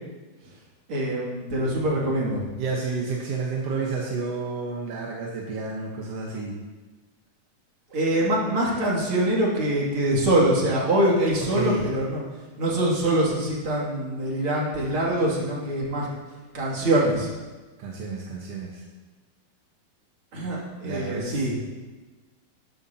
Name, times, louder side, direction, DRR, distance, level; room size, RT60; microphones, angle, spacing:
voice 1, 0.9-2.4 7.9-12.2 12.6-16.1 16.5-17.3 20.3-21.5, right 1 dB, 40° right, -4 dB, 2.8 m, -24 dB
voice 2, 2.6-6.6 11.5-11.8 17.8-18.8 20.8-21.5, right 4 dB, 65° right, -2 dB, 1.6 m, -30 dB
13.0 x 11.5 x 2.8 m, 1.3 s
omnidirectional pair, 4.2 m